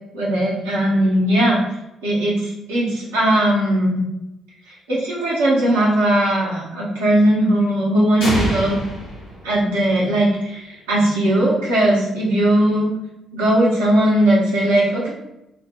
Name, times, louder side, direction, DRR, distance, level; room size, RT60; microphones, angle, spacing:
voice 1, 0.1-1.6 2.0-4.0 4.7-8.8 9.4-12.9 13.3-15.1, right 1 dB, 80° right, -6 dB, 1.0 m, -18 dB
sound 1, 8.2-10.1, equal, 80° left, 1.3 m, -26 dB
4.3 x 2.1 x 3.5 m, 0.91 s
figure-of-eight pair, 45°, 0 cm